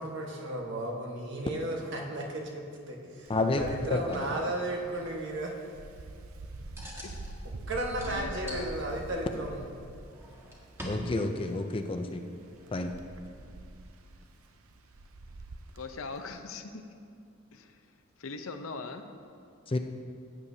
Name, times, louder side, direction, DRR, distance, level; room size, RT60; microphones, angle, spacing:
voice 1, 0.0-5.5 7.4-9.7, right 1 dB, 60° right, 0 dB, 1.3 m, -34 dB
voice 2, 3.3-4.2 10.8-12.2 12.7-12.9 19.7-19.8, left 2 dB, 25° left, 6 dB, 0.4 m, -30 dB
Wind, 3.3-16.4, right 2 dB, 85° right, 0.6 m, -45 dB
sound 1, 4.0-4.4 6.8-7.4 7.9-9.3 9.9-11.5 12.3-13.4 14.5-14.6, equal, 10° right, 1.4 m, -44 dB
voice 3, 8.1-8.8 15.7-16.8 17.5-17.8 18.2-19.0, left 4 dB, 75° left, 7 dB, 0.7 m, -41 dB
15.5 x 8.5 x 2.7 m, 2.4 s
head